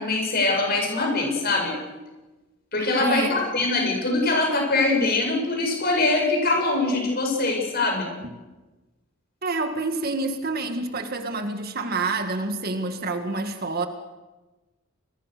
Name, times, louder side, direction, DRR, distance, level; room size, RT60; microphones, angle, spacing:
voice 1, 0.0-1.7 2.7-8.1, left 2 dB, 45° left, 7.9 m, -23 dB
voice 2, 3.0-3.4 8.2-8.3 9.4-13.9, right 3 dB, 45° right, 1.9 m, -28 dB
29.0 x 22.0 x 6.7 m
head